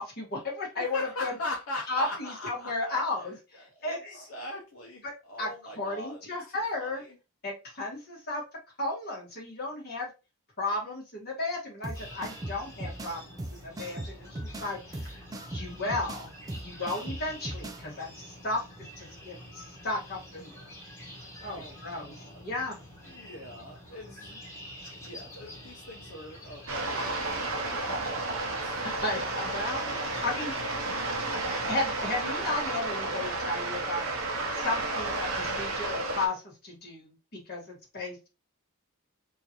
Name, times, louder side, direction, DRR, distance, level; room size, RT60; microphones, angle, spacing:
voice 1, 0.0-1.4 1.9-4.2 5.0-5.1 5.4-5.5 5.8-7.0 7.4-8.4 8.8-10.1 10.6-20.7 21.4-22.2 22.4-22.8 24.0-24.4 28.8-30.5 31.3-34.1 34.5-38.3, left 2 dB, 50° left, -3 dB, 1.7 m, -34 dB
voice 2, 0.8-3.0 3.6-6.3 6.8-7.2 21.4-22.4 23.0-28.8, left 1 dB, 75° left, -1 dB, 0.8 m, -41 dB
sound 1, 11.8-17.8, right 1 dB, 15° right, 0.4 m, -39 dB
sound 2, 11.9-31.1, equal, 15° left, 1.4 m, -47 dB
sound 3, 26.7-36.3, right 2 dB, 80° right, 0.8 m, -32 dB
3.7 x 2.6 x 2.9 m, 0.29 s
head